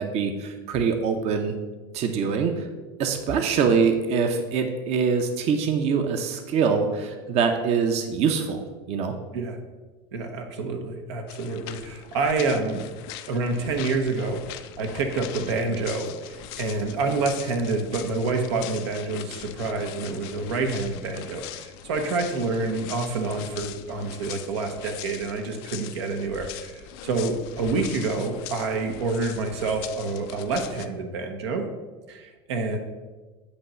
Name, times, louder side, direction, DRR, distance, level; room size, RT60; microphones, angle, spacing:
voice 1, 0.0-1.6 1.9-2.7 3.0-8.6 8.9-9.1, right 6 dB, 50° right, 6 dB, 0.7 m, -24 dB
voice 2, 10.1-12.9 13.3-31.7 32.1-32.8, right 3 dB, 90° right, 4 dB, 0.9 m, -28 dB
sound 1, 11.3-30.9, left 12 dB, 75° left, 0.5 m, -41 dB
8.2 x 3.0 x 5.5 m, 1.3 s
supercardioid pair, 105°, 14 cm